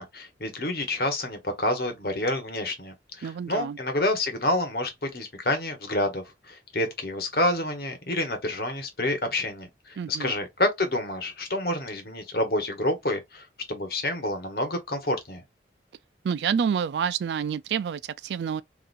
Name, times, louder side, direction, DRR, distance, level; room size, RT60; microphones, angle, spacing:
voice 1, 0.0-15.4, left 1 dB, 60° left, 1.2 m, -28 dB
voice 2, 3.2-3.8 10.0-10.3 16.2-18.6, right 7 dB, 75° right, 0.3 m, -28 dB
4.0 x 2.8 x 2.5 m
head